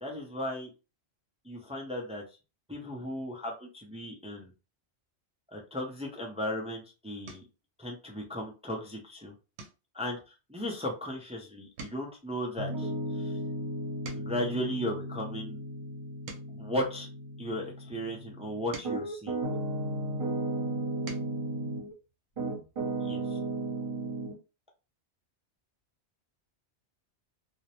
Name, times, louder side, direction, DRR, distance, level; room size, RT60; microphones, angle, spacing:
voice 1, 0.0-0.7 1.4-2.2 2.7-4.5 5.5-7.5 7.8-9.3 9.9-13.4 14.1-15.6 16.5-17.1 17.4-19.4 23.0-23.4, left 1 dB, 10° right, 0 dB, 0.3 m, -36 dB
sound 1, 7.2-7.6 8.1-8.5 8.8-9.0 9.5-11.4 11.6-14.6 15.2-17.7 18.3-20.2 20.7-21.4 22.8-22.9 23.2-23.4, right 3 dB, 80° right, 0.9 m, -50 dB
Piano, 12.6-21.9 22.4-24.4, right 2 dB, 50° right, 1.0 m, -35 dB
2.5 x 2.0 x 2.8 m, 0.31 s
omnidirectional pair, 1.1 m